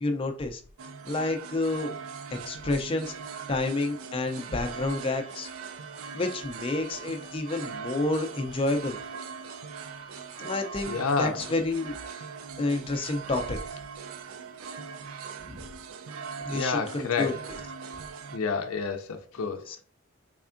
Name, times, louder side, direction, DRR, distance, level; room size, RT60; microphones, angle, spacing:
voice 1, 0.0-0.6 1.0-1.9 2.3-3.1 3.5-5.5 6.1-9.0 10.4-12.3 12.6-13.8 15.4-15.6 16.4-17.3 19.7-19.8, left 2 dB, 25° left, 0.4 m, -29 dB
sound 1, 0.8-18.4, right 6 dB, 75° right, 0.4 m, -40 dB
Trumpet, 4.2-11.1, right 2 dB, 30° right, 0.7 m, -51 dB
voice 2, 10.9-11.5 16.5-17.5 18.3-19.8, left 5 dB, 85° left, 0.4 m, -29 dB
3.5 x 3.3 x 2.5 m
head